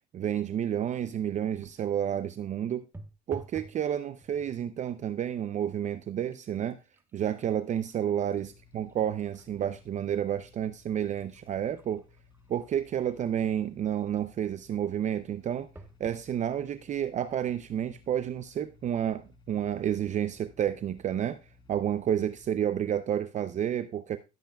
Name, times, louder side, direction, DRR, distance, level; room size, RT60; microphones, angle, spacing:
voice 1, 0.1-2.8 3.3-6.8 7.1-12.0 12.5-15.7 16.0-21.4 21.7-24.2, right 10 dB, 45° right, 0.5 m, -30 dB
sound 1, 1.6-2.1 2.9-3.8 4.2-4.7 5.4-5.6 6.0-9.5 10.0-10.1 10.8-13.5 15.8-16.3 17.0-17.1 17.3-17.4, right 2 dB, 15° right, 1.1 m, -52 dB
sound 2, 8.4-22.5, left 4 dB, 30° left, 1.9 m, -59 dB
18.0 x 8.1 x 2.3 m
cardioid pair, 110°, 17 cm